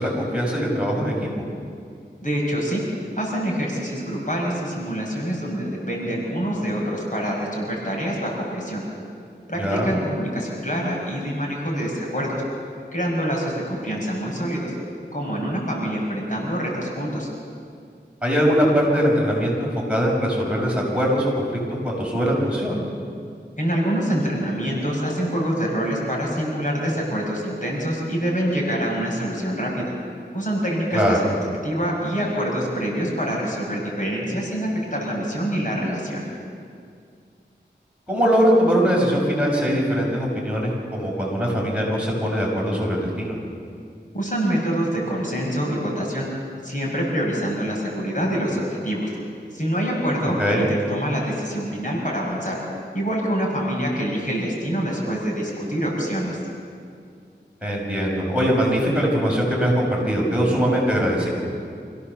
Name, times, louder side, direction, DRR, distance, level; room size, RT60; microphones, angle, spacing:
voice 1, 0.0-1.4 9.6-9.9 18.2-22.8 30.9-31.2 38.1-43.3 50.4-50.6 57.6-61.3, equal, 5° right, -3 dB, 6.5 m, -21 dB
voice 2, 2.2-2.8 3.2-8.8 9.5-12.4 12.9-14.7 15.1-17.3 23.6-29.7 30.3-31.2 31.6-36.2 44.1-46.3 46.6-49.1 49.5-52.6 52.9-56.4, equal, 45° left, -3 dB, 6.2 m, -25 dB
27.5 x 16.5 x 7.1 m, 2.3 s
wide cardioid pair, 40°, 19 cm